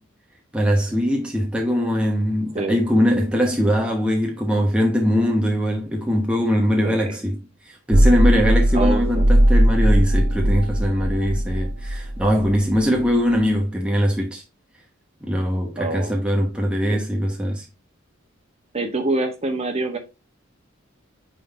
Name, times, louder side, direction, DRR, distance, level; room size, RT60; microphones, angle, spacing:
voice 1, 0.5-7.4 7.7-14.4 15.2-17.7, equal, 5° right, 0.9 m, -21 dB
voice 2, 6.8-7.1 8.7-9.3 15.8-16.1 16.9-17.0 18.7-20.0, right 2 dB, 30° right, 1.3 m, -25 dB
sound 1, 7.9-13.4, equal, 65° right, 0.9 m, -18 dB
9.2 x 3.8 x 3.4 m
head